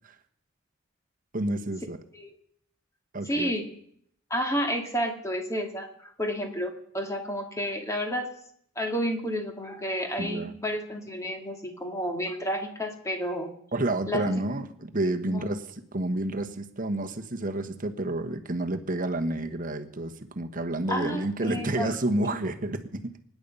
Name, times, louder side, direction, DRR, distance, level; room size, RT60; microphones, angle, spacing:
voice 1, 1.3-2.0 3.1-3.5 10.2-10.5 13.7-15.6 15.9-23.2, right 1 dB, 40° right, 7 dB, 1.3 m, -30 dB
voice 2, 3.2-3.7 4.3-8.3 8.8-13.5 14.1-14.4 15.2-15.5 20.9-21.9 22.2-22.3, equal, 15° left, 3 dB, 2.5 m, -31 dB
24.5 x 10.5 x 5.5 m, 0.67 s
head